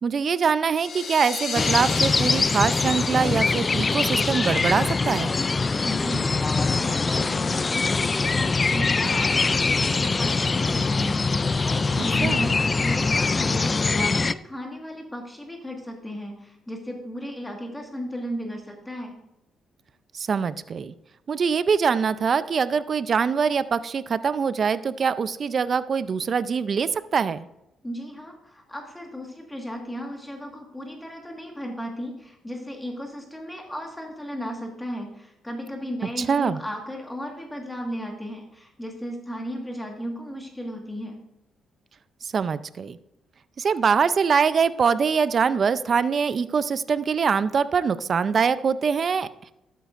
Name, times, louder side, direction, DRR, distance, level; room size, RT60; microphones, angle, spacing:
voice 1, 0.0-5.3 12.0-12.4 20.1-20.9 21.3-27.5 36.3-36.6 42.2-43.0 43.6-49.5, right 6 dB, 45° right, 15 dB, 0.5 m, -23 dB
sound 1, 0.7-6.0, left 5 dB, 55° left, 1.8 m, -36 dB
sound 2, 1.6-14.3, left 4 dB, 30° left, 0.3 m, -23 dB
voice 2, 5.8-19.1 27.8-41.2, equal, 10° left, 1 dB, 1.7 m, -35 dB
12.5 x 9.1 x 2.5 m, 0.87 s
cardioid pair, 90°, 0 cm